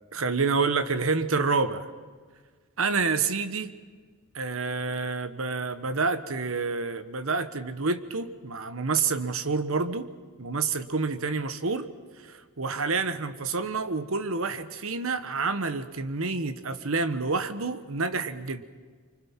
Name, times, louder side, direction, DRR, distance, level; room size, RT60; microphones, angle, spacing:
voice 1, 0.1-1.9 2.8-3.7 4.3-10.1 10.4-11.9 12.2-18.6, right 4 dB, 65° right, 11 dB, 1.1 m, -28 dB
25.5 x 24.5 x 5.9 m, 1.5 s
head